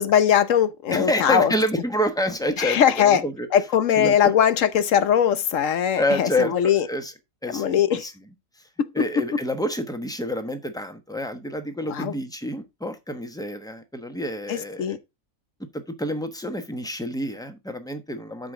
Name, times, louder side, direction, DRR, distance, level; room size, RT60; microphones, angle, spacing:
voice 1, 0.0-1.5 2.6-3.2 3.5-6.9 7.5-8.1 8.8-9.0 9.3-9.4 11.9-12.1 14.5-15.0, left 9 dB, 75° left, 1.2 m, -20 dB
voice 2, 0.9-3.5 4.0-4.3 6.0-7.1 7.4-8.1 8.9-15.0 15.7-18.5, left 1 dB, 5° left, 1.1 m, -28 dB
12.5 x 5.1 x 3.7 m
omnidirectional pair, 1.4 m